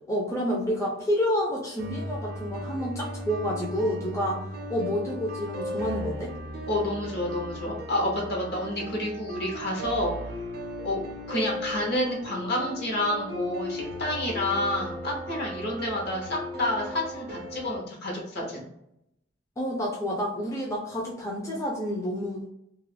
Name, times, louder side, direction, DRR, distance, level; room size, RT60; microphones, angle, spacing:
voice 1, 0.1-4.4 4.7-6.3 19.6-22.5, equal, 15° left, -3 dB, 0.4 m, -29 dB
sound 1, 1.8-17.8, equal, 55° right, 0.5 m, -37 dB
voice 2, 6.7-10.1 10.8-11.0 11.3-18.6, left 1 dB, 60° left, -1 dB, 0.8 m, -29 dB
2.3 x 2.0 x 3.2 m, 0.80 s
head